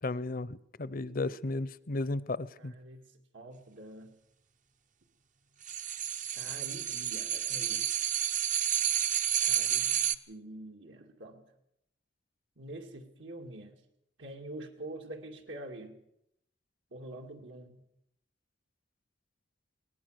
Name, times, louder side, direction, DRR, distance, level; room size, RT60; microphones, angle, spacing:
voice 1, 0.0-2.7, left 2 dB, 50° left, 19 dB, 0.7 m, -34 dB
voice 2, 2.6-4.1 6.3-7.9 9.4-11.4 12.6-13.8 14.2-16.0 16.9-17.8, right 1 dB, 80° right, 2 dB, 2.6 m, -46 dB
sound 1, 5.6-10.1, right 10 dB, 45° right, 0.8 m, -30 dB
22.0 x 18.0 x 6.7 m, 0.76 s
head